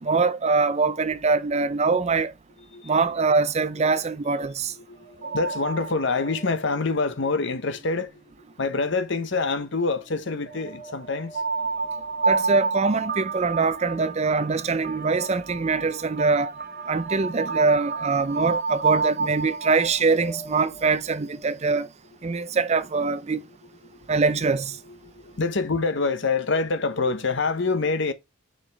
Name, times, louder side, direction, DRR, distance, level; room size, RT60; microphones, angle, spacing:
voice 1, 0.0-2.3 2.8-4.7 12.3-16.5 16.9-21.9 22.2-23.4 24.1-24.8, right 4 dB, 30° right, 0.5 m, -23 dB
voice 2, 4.8-8.2 8.6-11.4 22.4-22.5 23.8-24.1 24.9-28.1, left 3 dB, 60° left, 0.9 m, -26 dB
sound 1, 4.9-8.5 9.1-21.7, right 4 dB, 45° right, 1.4 m, -31 dB
5.5 x 5.0 x 4.6 m
head